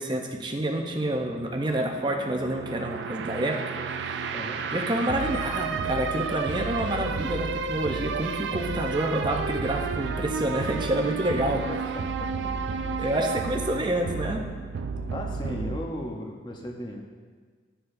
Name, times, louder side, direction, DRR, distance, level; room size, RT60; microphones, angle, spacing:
voice 1, 0.0-4.0 4.7-11.6 13.0-14.4, right 1 dB, 25° right, 2 dB, 0.6 m, -28 dB
sound 1, 0.6-15.8, right 5 dB, 70° right, 0.3 m, -32 dB
voice 2, 11.4-12.5 13.1-13.2 15.1-17.0, left 1 dB, 25° left, 1 dB, 0.7 m, -36 dB
11.0 x 4.7 x 2.5 m, 1.5 s
head